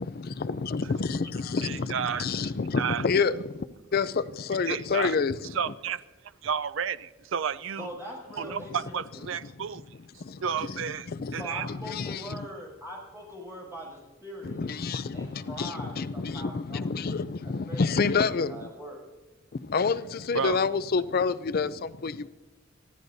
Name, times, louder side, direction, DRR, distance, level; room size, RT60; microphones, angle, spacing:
voice 1, 0.0-3.6 3.9-5.4 10.2-12.5 14.4-18.7 19.5-22.3, left 5 dB, 45° left, 0.4 m, -29 dB
voice 2, 1.6-2.3 2.8-3.0 4.7-5.1 5.5-6.0 6.4-7.9 8.4-9.8 10.4-11.7 20.3-20.7, right 7 dB, 65° right, 0.4 m, -31 dB
voice 3, 7.8-9.4 11.3-14.6 15.1-17.2 17.4-18.0 18.5-19.0, equal, 15° right, 6.5 m, -42 dB
24.0 x 15.5 x 2.7 m
head